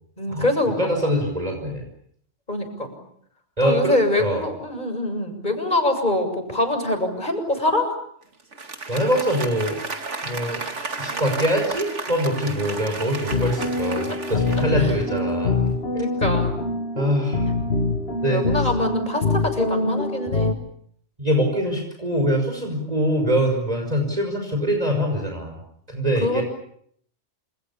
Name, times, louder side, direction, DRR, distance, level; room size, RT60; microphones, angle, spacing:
voice 1, 0.2-0.9 2.5-2.9 3.6-7.9 14.8-14.9 15.9-16.6 18.2-20.5 26.2-26.4, left 1 dB, 40° left, 6 dB, 7.3 m, -24 dB
voice 2, 0.8-1.8 3.6-4.4 8.9-9.8 10.2-10.6 11.0-15.6 16.9-17.5 18.2-18.4 20.3-20.4 21.2-25.6 25.9-26.4, equal, 35° right, 3 dB, 5.8 m, -23 dB
Applause, 8.4-15.4, right 3 dB, 90° right, 2.6 m, -33 dB
sound 1, 13.3-20.5, left 3 dB, 60° left, 2.1 m, -24 dB
29.0 x 28.5 x 7.1 m, 0.69 s
omnidirectional pair, 1.2 m